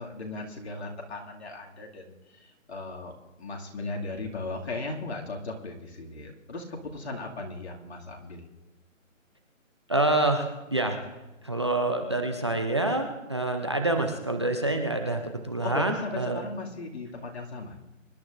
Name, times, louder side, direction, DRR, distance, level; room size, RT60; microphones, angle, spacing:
voice 1, 0.0-3.1 3.4-8.5 15.6-17.8, left 2 dB, 55° left, 0 dB, 2.4 m, -37 dB
voice 2, 9.9-11.0 11.4-16.4, right 2 dB, 20° right, 5 dB, 0.5 m, -27 dB
25.5 x 12.0 x 2.6 m, 1.0 s
hypercardioid pair, 160°, 40 cm